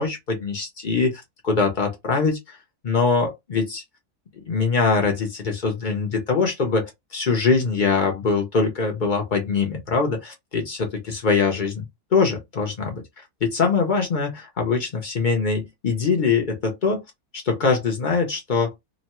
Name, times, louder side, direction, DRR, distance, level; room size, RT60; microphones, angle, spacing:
voice 1, 0.0-2.6 2.8-3.8 4.5-11.8 12.1-17.0 17.3-18.7, left 4 dB, 55° left, 0.5 m, -23 dB
3.0 x 2.1 x 2.8 m
omnidirectional pair, 1.7 m